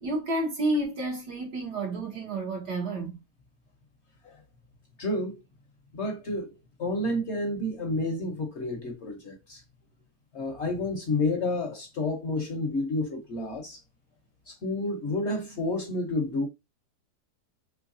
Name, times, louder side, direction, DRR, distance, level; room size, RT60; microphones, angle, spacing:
voice 1, 0.0-3.2, right 1 dB, 80° right, 2.2 m, -30 dB
voice 2, 5.0-5.4 5.9-6.5 6.8-9.6 10.3-13.8 14.5-16.5, left 2 dB, 55° left, 0.9 m, -30 dB
4.6 x 3.1 x 2.6 m
omnidirectional pair, 1.7 m